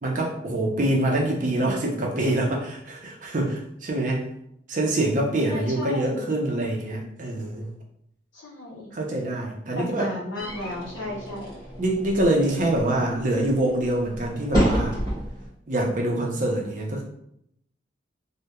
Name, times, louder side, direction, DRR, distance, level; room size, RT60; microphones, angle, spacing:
voice 1, 0.0-4.2 4.7-7.7 8.9-10.1 11.8-14.9 15.7-17.0, right 1 dB, 45° right, 0 dB, 0.5 m, -25 dB
voice 2, 5.5-6.3 8.3-8.9 9.7-11.6, left 1 dB, 85° left, -1 dB, 0.7 m, -34 dB
sound 1, 10.4-15.5, equal, 20° left, 1.4 m, -30 dB
2.8 x 2.1 x 2.2 m, 0.74 s
head